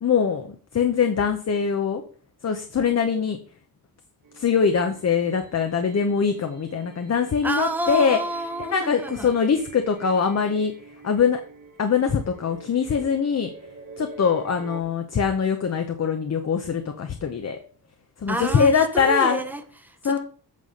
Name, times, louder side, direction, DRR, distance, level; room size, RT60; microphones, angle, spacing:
voice 1, 0.0-2.0 2.4-3.4 4.3-8.2 8.6-10.7 11.0-11.4 11.8-13.5 14.0-17.6 18.2-19.4 20.0-20.2, left 6 dB, 40° left, 6 dB, 0.8 m, -22 dB
sound 1, 4.2-14.8, right 3 dB, 55° right, 1.7 m, -46 dB
voice 2, 7.4-9.3 18.3-20.2, right 1 dB, 5° right, 6 dB, 0.8 m, -29 dB
8.5 x 4.1 x 6.4 m, 0.42 s
wide cardioid pair, 175°, 38 cm